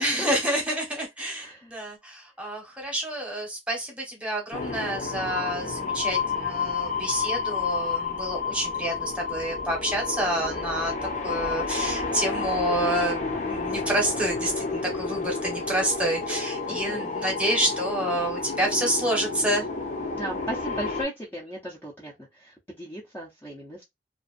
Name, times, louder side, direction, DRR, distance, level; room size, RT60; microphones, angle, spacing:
voice 1, 0.0-10.9 11.2-19.7, right 1 dB, 5° right, 1.0 m, -28 dB
voice 2, 1.4-1.7 16.7-17.1 20.2-23.8, right 1 dB, 15° left, 0.6 m, -37 dB
sound 1, 4.5-21.0, left 4 dB, 45° left, 0.7 m, -30 dB
2.5 x 2.3 x 2.4 m
head